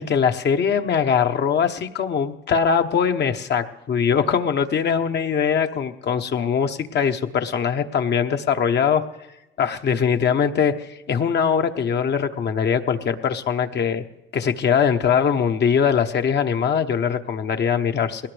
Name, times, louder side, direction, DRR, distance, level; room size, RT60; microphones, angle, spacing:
voice 1, 0.0-9.0 9.6-14.0 14.3-18.3, left 7 dB, 60° left, 6 dB, 1.0 m, -21 dB
20.5 x 19.0 x 3.4 m, 0.99 s
cardioid pair, 90°, 20 cm